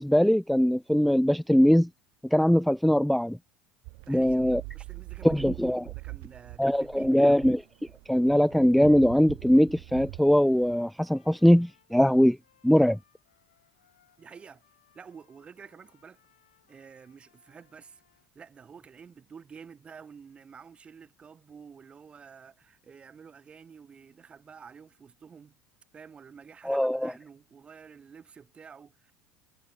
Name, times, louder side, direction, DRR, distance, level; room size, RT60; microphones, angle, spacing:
voice 1, 0.0-1.9 2.3-3.4 4.1-4.6 5.2-5.8 6.6-7.6 8.1-12.4 12.6-13.0 26.7-27.1, equal, ahead, 0.4 m, -21 dB
sound 1, 3.8-10.8, right 38 dB, 65° right, 1.2 m, -43 dB
voice 2, 4.0-7.4 14.2-14.6 14.9-16.2 16.7-18.0 18.3-25.6 25.9-29.1, right 6 dB, 30° right, 4.6 m, -50 dB
Trumpet, 9.9-18.3, left 11 dB, 80° left, 7.5 m, -67 dB
hypercardioid pair, 75°, 4 cm